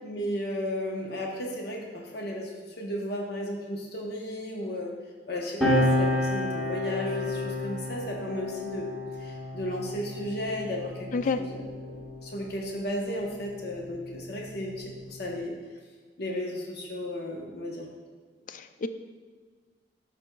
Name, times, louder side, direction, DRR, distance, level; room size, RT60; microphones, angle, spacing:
voice 1, 0.0-2.5 2.8-4.9 5.3-8.9 9.2-11.1 11.4-15.5 16.2-17.9, left 1 dB, 65° left, -1 dB, 0.9 m, -34 dB
sound 1, 5.6-12.5 13.5-15.3, left 1 dB, ahead, 1.1 m, -31 dB
voice 2, 18.5-18.9, left 4 dB, 45° left, 10 dB, 0.3 m, -29 dB
11.5 x 4.3 x 2.3 m, 1.5 s
head